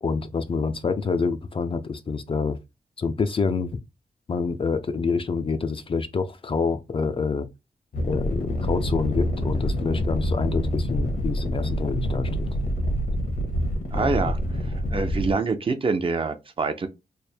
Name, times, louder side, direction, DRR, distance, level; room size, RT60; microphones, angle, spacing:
voice 1, 0.0-2.6 3.0-3.8 4.3-7.5 8.1-12.5 13.9-14.3, left 4 dB, 35° left, 0.4 m, -27 dB
sound 1, 7.9-15.3, equal, 75° left, 1.1 m, -26 dB
voice 2, 13.9-14.4 14.9-16.9, right 4 dB, 35° right, 0.5 m, -25 dB
3.3 x 2.1 x 4.3 m
wide cardioid pair, 150°, 15 cm